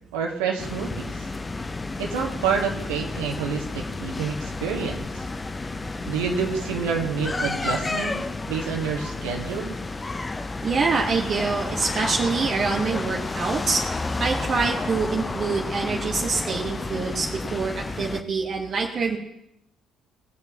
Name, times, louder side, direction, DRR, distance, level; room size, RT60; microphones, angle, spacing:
voice 1, 0.1-1.3 2.0-5.1 6.1-8.2 8.5-9.7, right 6 dB, 75° right, 1 dB, 1.5 m, -28 dB
sound 1, 0.6-18.2, left 3 dB, 25° left, 0.6 m, -31 dB
voice 2, 10.6-13.8 14.2-19.2, right 4 dB, 50° right, 0 dB, 1.1 m, -25 dB
19.5 x 7.0 x 2.9 m, 0.83 s
hypercardioid pair, 50°, 0 cm